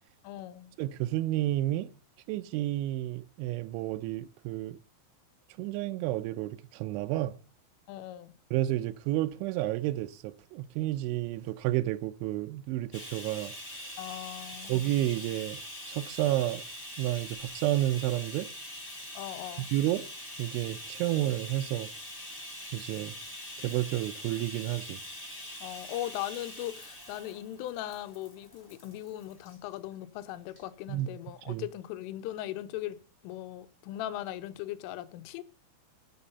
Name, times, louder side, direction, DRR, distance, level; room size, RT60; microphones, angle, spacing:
voice 1, 0.2-0.7 7.9-8.3 14.0-14.8 19.1-19.7 25.6-35.4, left 14 dB, 85° left, 3.3 m, -39 dB
voice 2, 0.8-1.9 2.3-4.8 5.6-7.4 8.5-13.5 14.7-15.6 15.9-16.6 17.0-18.5 19.7-20.1 20.4-21.9 22.7-23.1 23.6-25.0 30.9-31.1 31.5-31.7, right 15 dB, 80° right, 2.9 m, -31 dB
Bathtub (filling or washing), 12.9-29.6 30.5-30.6 31.0-31.1, left 1 dB, 20° left, 2.1 m, -44 dB
11.5 x 7.1 x 6.8 m
omnidirectional pair, 5.7 m